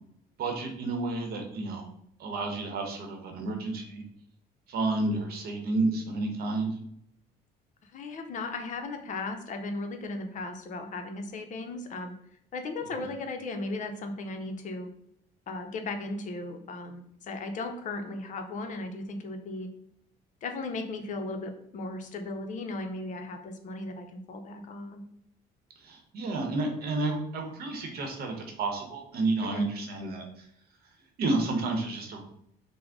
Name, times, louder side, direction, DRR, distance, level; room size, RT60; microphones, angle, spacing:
voice 1, 0.4-1.8 2.2-4.0 4.7-6.7 25.8-30.5 31.2-32.2, right 2 dB, 65° right, 3 dB, 0.8 m, -31 dB
voice 2, 7.8-12.1 12.5-14.9 15.5-19.7 20.4-25.0 29.4-29.7, left 2 dB, 50° left, 6 dB, 0.5 m, -36 dB
3.6 x 2.0 x 3.5 m, 0.71 s
cardioid pair, 110°, 17 cm